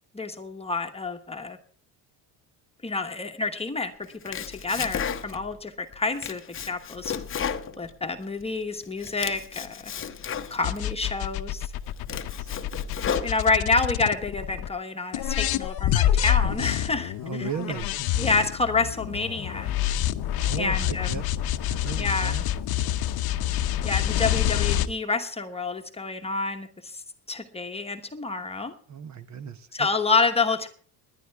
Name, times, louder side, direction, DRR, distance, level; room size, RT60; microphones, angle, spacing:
voice 1, 0.1-1.6 2.8-3.9 4.2-6.4 6.7-7.1 7.8-9.9 10.5-11.7 13.2-17.1 17.4-17.5 18.2-19.7 20.6-21.2 22.0-22.4 23.8-27.0 27.3-28.7 29.7-30.7, left 3 dB, 15° left, 1.1 m, -28 dB
Domestic sounds home sounds, 4.0-5.6 5.9-8.5 8.8-10.8 11.4-11.5 11.9-13.8, left 7 dB, 30° left, 0.8 m, -33 dB
sound 1, 10.6-14.7 15.1-24.9, left 11 dB, 60° left, 0.8 m, -27 dB
voice 2, 12.0-12.5 13.3-13.4 17.2-17.9 20.4-21.2 21.6-23.0 28.9-29.9, right 6 dB, 45° right, 1.0 m, -37 dB
19.5 x 11.0 x 3.5 m
cardioid pair, 145°, 41 cm